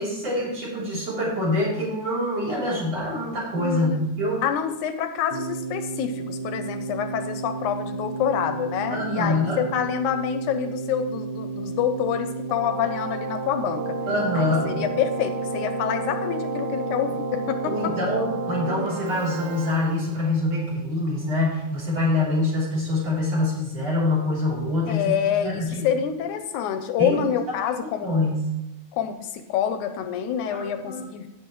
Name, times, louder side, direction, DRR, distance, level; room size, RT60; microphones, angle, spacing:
voice 1, 0.0-4.4 8.9-9.6 14.1-14.7 17.7-25.1 25.4-25.9 27.0-27.2 28.0-28.5 30.5-31.1, left 1 dB, 50° right, -6 dB, 4.4 m, -25 dB
voice 2, 3.6-4.0 4.4-14.0 14.3-18.0 24.9-28.1 28.9-31.3, left 8 dB, 80° left, 8 dB, 2.0 m, -27 dB
Keyboard (musical), 5.3-20.4, right 3 dB, 85° right, 2.8 m, -31 dB
14.5 x 8.5 x 3.1 m, 0.92 s
omnidirectional pair, 3.7 m